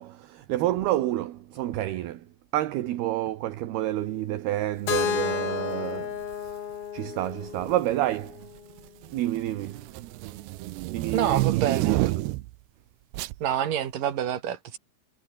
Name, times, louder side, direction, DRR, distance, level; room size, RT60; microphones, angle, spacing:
voice 1, 0.0-8.4 9.1-10.0 10.9-12.4, right 14 dB, 65° right, 2.8 m, -29 dB
Keyboard (musical), 4.9-8.8, left 8 dB, 65° left, 1.4 m, -32 dB
sound 1, 6.2-6.5 7.5-7.9 8.3-12.5 13.1-13.4, right 19 dB, 85° right, 2.4 m, -29 dB
voice 2, 11.1-12.0 13.4-14.8, right 10 dB, 50° right, 3.4 m, -27 dB
omnidirectional pair, 5.7 m